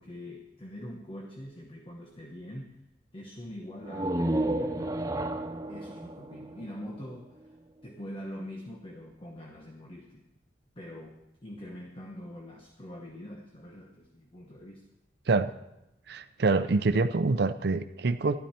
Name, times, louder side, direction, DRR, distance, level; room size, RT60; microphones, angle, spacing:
voice 1, 0.0-2.8 3.1-4.9 5.7-7.6 7.8-10.2 10.8-14.8, left 1 dB, 30° left, 1 dB, 1.1 m, -44 dB
sound 1, 3.8-7.5, right 1 dB, 20° right, 0.6 m, -32 dB
voice 2, 16.1-18.4, right 3 dB, 60° right, 10 dB, 0.6 m, -26 dB
12.5 x 12.0 x 4.4 m, 0.89 s
head